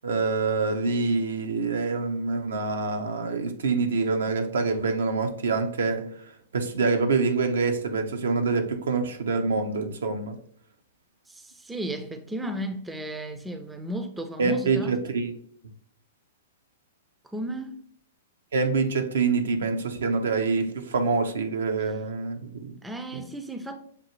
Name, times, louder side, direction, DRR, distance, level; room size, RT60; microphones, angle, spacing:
voice 1, 0.0-6.2 6.5-10.4 14.4-15.3 18.5-22.8, right 4 dB, 75° right, 0.6 m, -26 dB
voice 2, 11.3-15.0 17.3-17.8 22.8-23.8, right 1 dB, 10° right, 0.4 m, -34 dB
6.7 x 2.4 x 2.9 m
hypercardioid pair, 115°, 0 cm